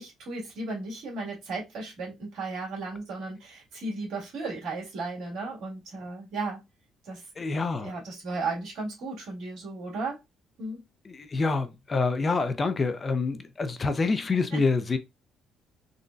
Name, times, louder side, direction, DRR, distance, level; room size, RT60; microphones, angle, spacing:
voice 1, 0.0-6.6 7.1-7.2 7.8-10.2 10.6-10.8, right 3 dB, 75° right, 1.9 m, -35 dB
voice 2, 7.4-7.9 11.0-15.0, left 4 dB, 30° left, 0.4 m, -27 dB
3.7 x 2.1 x 2.5 m
cardioid pair, 100°, 0 cm